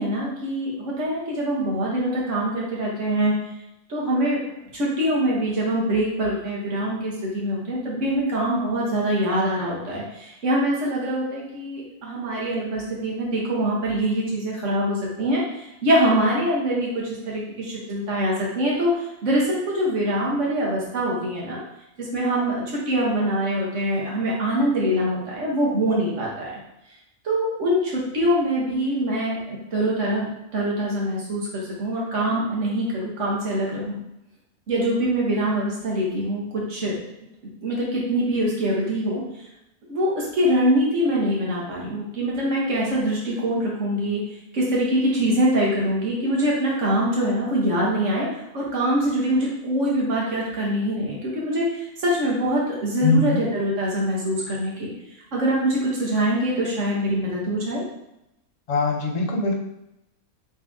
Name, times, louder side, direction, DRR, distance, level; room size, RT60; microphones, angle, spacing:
voice 1, 0.0-3.3 3.9-4.4 4.7-15.4 15.8-18.9 19.2-21.6 22.0-26.5 27.2-34.0 34.7-36.4 36.7-36.9 37.6-39.2 39.9-44.2 44.5-48.3 48.5-51.6 52.0-54.9 55.3-57.8, right 1 dB, 55° right, -4 dB, 1.6 m, -24 dB
voice 2, 53.0-53.4 58.7-59.6, left 3 dB, 55° left, 2 dB, 0.4 m, -21 dB
4.4 x 3.3 x 3.5 m, 0.86 s
omnidirectional pair, 1.5 m